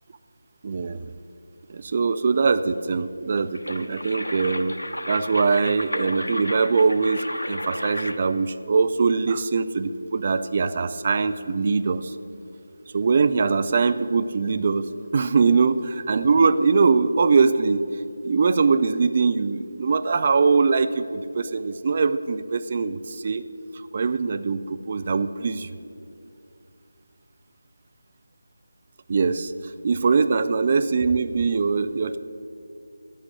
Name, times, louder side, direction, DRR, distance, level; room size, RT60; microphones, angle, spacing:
voice 1, 0.6-1.1 1.7-4.8 5.0-12.2 12.9-17.9 18.2-23.4 23.7-25.7 29.1-32.2, right 4 dB, 30° right, 12 dB, 0.4 m, -22 dB
sound 1, 3.4-8.3, left 1 dB, 70° left, 1.0 m, -33 dB
11.0 x 8.5 x 7.7 m, 2.5 s
figure-of-eight pair, 160°, 0 cm